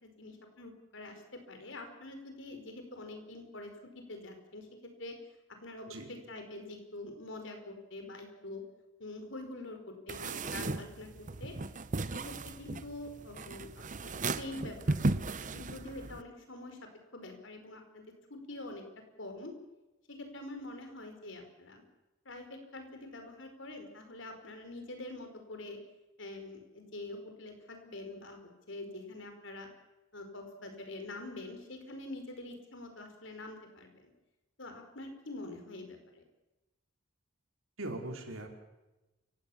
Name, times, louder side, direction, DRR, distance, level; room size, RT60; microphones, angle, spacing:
voice 1, 0.0-4.7 5.0-5.2 5.6-8.6 9.0-11.5 12.1-18.8 19.2-19.5 20.1-21.8 22.2-25.8 26.2-28.4 28.7-29.7 30.1-34.1 34.6-36.2, left 2 dB, 65° left, 6 dB, 4.8 m, -45 dB
sound 1, 10.1-16.2, right 2 dB, 40° right, 0.9 m, -36 dB
voice 2, 37.8-38.5, right 2 dB, 85° right, 3 dB, 4.8 m, -40 dB
28.5 x 17.0 x 7.2 m, 1.0 s
head